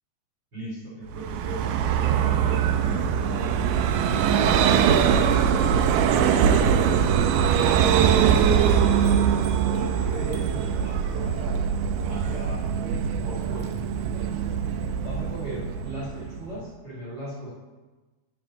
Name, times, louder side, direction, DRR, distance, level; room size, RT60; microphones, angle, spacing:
voice 1, 0.5-7.0 7.5-9.2 9.6-11.6 12.1-14.5 15.0-17.5, right 1 dB, 30° right, -6 dB, 3.3 m, -38 dB
Vehicle, 1.1-16.6, right 8 dB, 80° right, 2.0 m, -22 dB
9.2 x 8.0 x 6.3 m, 1.2 s
omnidirectional pair, 4.4 m